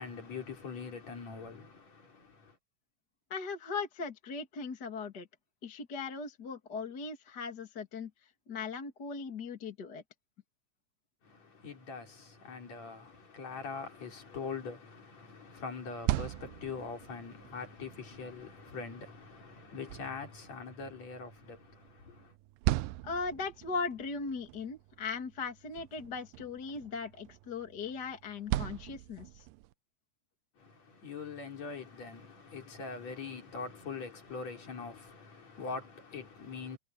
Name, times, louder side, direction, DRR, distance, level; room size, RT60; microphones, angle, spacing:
voice 1, 0.0-2.6 11.2-22.3 30.6-36.8, left 4 dB, 50° left, 5.1 m, -43 dB
voice 2, 3.3-5.3 5.6-8.1 8.5-10.0 23.0-29.4, left 4 dB, 35° left, 2.4 m, -38 dB
sound 1, 15.8-29.7, right 16 dB, 85° right, 2.3 m, -40 dB
omnidirectional pair, 3.9 m